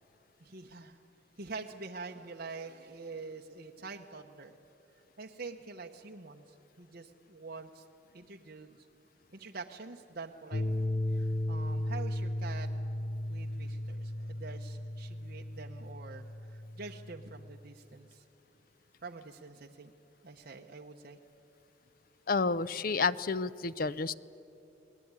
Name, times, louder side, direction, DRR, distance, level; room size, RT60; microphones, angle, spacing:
voice 1, 0.4-1.0 1.4-4.6 5.2-7.8 8.1-8.8 9.3-10.6 11.1-12.7 13.3-18.2 19.0-19.9 20.2-21.2, right 4 dB, 50° right, 1 dB, 1.0 m, -46 dB
sound 1, 10.5-17.6, left 1 dB, 65° left, 1.1 m, -35 dB
voice 2, 22.3-24.1, left 4 dB, 50° left, 17 dB, 0.6 m, -30 dB
28.5 x 19.5 x 9.7 m, 2.8 s
head